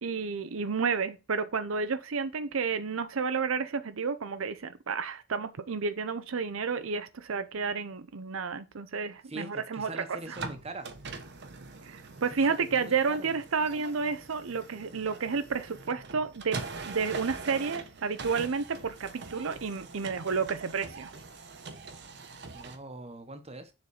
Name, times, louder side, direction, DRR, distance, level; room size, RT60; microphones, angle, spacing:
voice 1, 0.0-10.4 11.8-21.1, right 5 dB, 90° right, 0.6 m, -31 dB
voice 2, 9.3-10.9 12.5-13.3 22.5-23.7, right 2 dB, 30° right, 1.2 m, -42 dB
sound 1, 10.2-22.8, right 4 dB, 60° right, 1.1 m, -43 dB
7.1 x 4.0 x 4.9 m
head